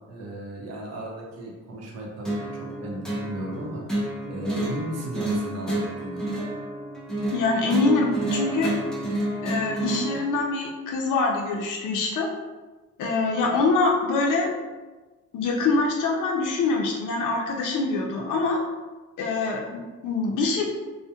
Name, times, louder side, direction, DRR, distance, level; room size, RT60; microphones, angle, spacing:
voice 1, 0.1-3.8 4.3-6.2, right 1 dB, 55° right, -1 dB, 0.6 m, -35 dB
sound 1, 2.2-10.2, right 1 dB, ahead, 0.3 m, -29 dB
voice 2, 7.3-8.7 9.4-12.3 13.0-14.5 15.3-18.6 19.2-20.7, left 3 dB, 80° left, 0 dB, 0.5 m, -24 dB
2.2 x 2.1 x 2.7 m, 1.2 s
cardioid pair, 165°, 30 cm